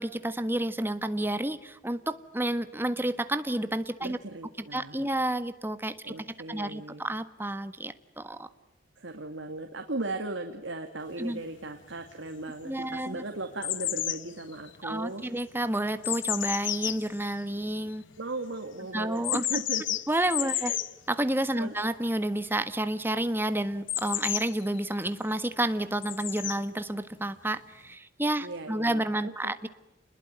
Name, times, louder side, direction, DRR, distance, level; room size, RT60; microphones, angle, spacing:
voice 1, 0.0-4.2 4.7-6.1 6.5-8.5 11.2-11.4 12.6-13.2 14.8-18.0 18.9-19.6 20.1-20.7 21.1-29.7, right 1 dB, 10° right, 11 dB, 1.5 m, -30 dB
voice 2, 4.0-5.1 6.0-7.0 9.0-15.3 18.2-20.0 20.4-20.8 21.5-21.7 28.4-29.5, right 2 dB, 75° right, 5 dB, 2.4 m, -37 dB
sound 1, 11.3-11.4 12.0-12.6 12.9-18.2 19.2-20.9 23.9-24.9 26.0-26.6 27.6-27.7, left 13 dB, 75° left, 1.2 m, -32 dB
29.5 x 21.0 x 9.5 m, 0.96 s
head